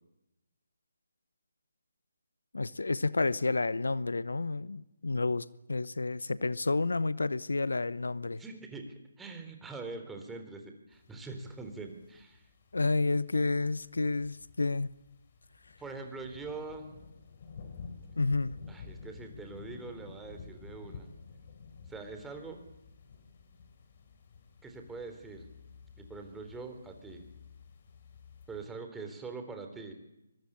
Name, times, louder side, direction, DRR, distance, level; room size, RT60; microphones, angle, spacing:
voice 1, 2.5-8.4 12.7-14.9 18.2-18.5, left 3 dB, 75° left, 0.9 m, -30 dB
voice 2, 8.4-12.5 15.8-16.9 18.7-21.1 21.9-22.6 24.6-25.5 26.0-27.3 28.5-29.9, right 3 dB, 5° right, 3.6 m, -43 dB
sound 1, 10.9-28.7, left 5 dB, 40° left, 4.1 m, -52 dB
24.5 x 22.5 x 8.8 m
figure-of-eight pair, 150°, 0 cm